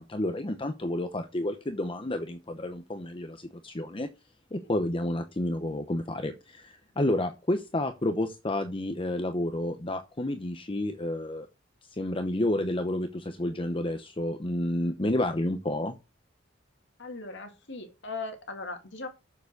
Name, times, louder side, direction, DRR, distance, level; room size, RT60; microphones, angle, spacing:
voice 1, 0.0-4.1 4.5-11.5 11.9-15.9, left 1 dB, 25° left, 0.9 m, -30 dB
voice 2, 17.0-19.1, left 3 dB, 65° left, 2.1 m, -39 dB
7.1 x 7.0 x 6.5 m
head